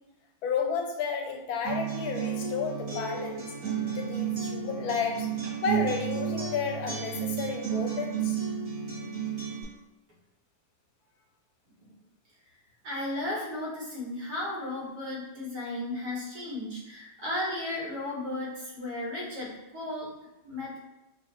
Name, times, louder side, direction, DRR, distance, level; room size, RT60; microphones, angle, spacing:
voice 1, 0.4-3.5 3.9-5.3 5.6-8.4 19.2-19.3, left 5 dB, 85° left, 3 dB, 1.1 m, -32 dB
Acoustic guitar, 1.6-9.6, right 7 dB, 60° right, 1.6 m, -32 dB
voice 2, 12.8-20.1 20.4-20.8, left 1 dB, 80° right, -5 dB, 1.8 m, -35 dB
4.8 x 2.3 x 2.9 m, 0.95 s
omnidirectional pair, 1.6 m